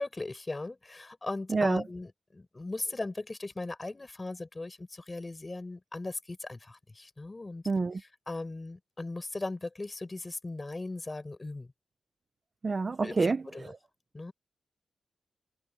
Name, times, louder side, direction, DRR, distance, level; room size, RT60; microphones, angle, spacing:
voice 1, 0.0-7.6 7.9-11.7 13.0-13.7 14.1-14.3, left 2 dB, 20° left, 6.7 m, -38 dB
voice 2, 1.5-1.8 7.7-8.0 12.6-13.7, right 4 dB, 30° right, 0.9 m, -28 dB
wide cardioid pair, 145°, 0 cm